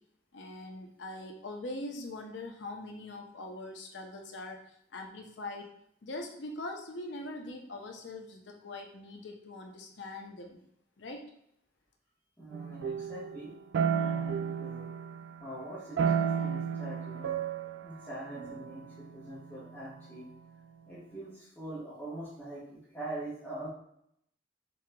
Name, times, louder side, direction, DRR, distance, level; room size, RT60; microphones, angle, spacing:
voice 1, 0.3-5.7 6.0-10.6 11.0-11.2, left 2 dB, 85° left, 2 dB, 0.6 m, -42 dB
voice 2, 12.4-13.5 13.8-14.9 15.4-17.4 17.8-20.3 20.9-23.7, right 1 dB, 10° left, -12 dB, 1.2 m, -43 dB
sound 1, 12.5-15.5 16.0-19.8, right 7 dB, 80° right, 0.3 m, -33 dB
5.3 x 2.8 x 2.2 m, 0.72 s
head